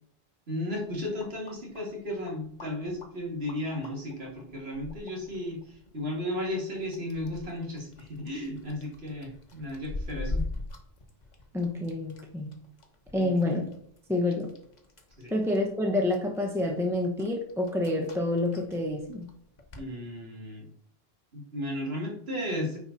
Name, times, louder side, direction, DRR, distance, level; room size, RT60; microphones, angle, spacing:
voice 1, 0.5-10.5 13.2-13.3 15.2-15.3 19.7-20.7 21.3-22.8, left 1 dB, 80° right, -2 dB, 2.8 m, -34 dB
sound 1, 0.7-19.9, left 2 dB, 45° left, 1.2 m, -44 dB
voice 2, 11.5-12.5 13.1-13.7 14.1-14.5 15.3-19.3, left 2 dB, 5° right, 1 dB, 1.0 m, -28 dB
9.7 x 4.7 x 4.1 m, 0.65 s
omnidirectional pair, 1.0 m